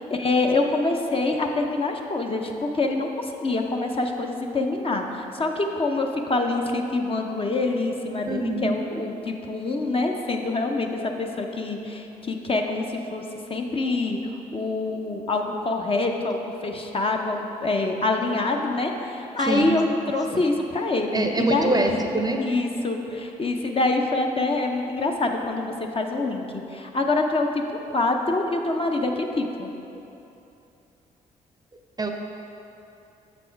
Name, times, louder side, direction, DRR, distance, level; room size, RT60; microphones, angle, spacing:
voice 1, 0.0-13.2 13.5-14.2 14.5-21.7 22.5-27.6 27.9-29.7, left 2 dB, 35° left, 2 dB, 0.7 m, -25 dB
voice 2, 8.2-8.8 19.5-19.7 20.3-20.4 21.1-22.4 32.0-32.1, right 2 dB, 25° right, 4 dB, 0.6 m, -24 dB
6.9 x 4.2 x 4.5 m, 2.9 s
supercardioid pair, 55°, 17 cm